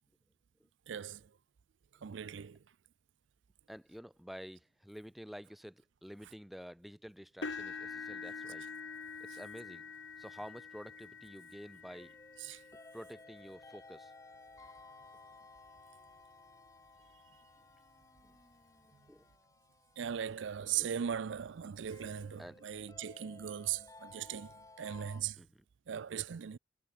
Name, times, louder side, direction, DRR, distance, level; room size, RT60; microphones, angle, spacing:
voice 1, 0.9-1.3 2.0-2.6 12.4-12.6 20.0-25.4 25.9-26.6, right 9 dB, 90° right, 0.4 m, -39 dB
voice 2, 3.7-8.7 9.2-9.9 10.2-12.1 12.9-14.1 18.2-18.3 19.1-19.2 20.7-20.9 22.4-22.7 25.4-25.6, equal, ahead, 0.7 m, -50 dB
sound 1, 7.4-15.4 16.1-16.3 16.8-16.9 18.2-18.3, left 4 dB, 85° left, 2.9 m, -47 dB
sound 2, 7.4-25.2, left 2 dB, 20° left, 1.4 m, -59 dB
head